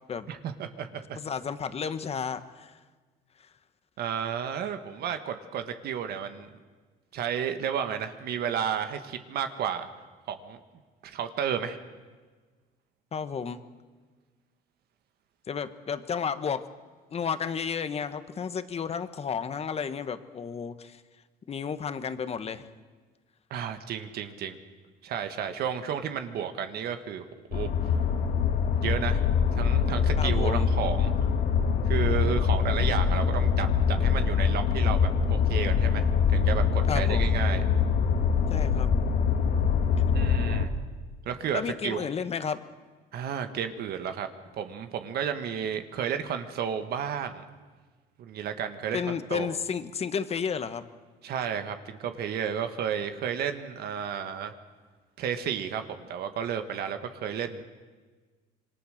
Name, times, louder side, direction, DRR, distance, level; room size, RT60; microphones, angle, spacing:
voice 1, 0.3-1.2 4.0-6.5 7.1-9.9 10.3-10.6 11.0-11.8 23.5-24.6 25.0-28.0 28.8-29.2 29.5-31.1 31.9-37.6 40.1-40.7 41.3-42.1 43.1-44.3 44.6-47.4 48.2-49.0 49.3-49.5 51.2-54.5 55.2-57.6, right 8 dB, 70° right, 8 dB, 1.7 m, -32 dB
voice 2, 1.2-2.7 13.1-13.6 15.5-16.7 17.1-21.0 21.5-22.7 30.2-30.7 36.9-37.4 38.5-38.9 41.5-42.6 48.9-50.8, left 6 dB, 35° left, 11 dB, 1.4 m, -32 dB
sound 1, 27.5-40.7, left 6 dB, 70° left, 2.2 m, -24 dB
27.0 x 22.5 x 6.7 m, 1.4 s
cardioid pair, 110°, 17 cm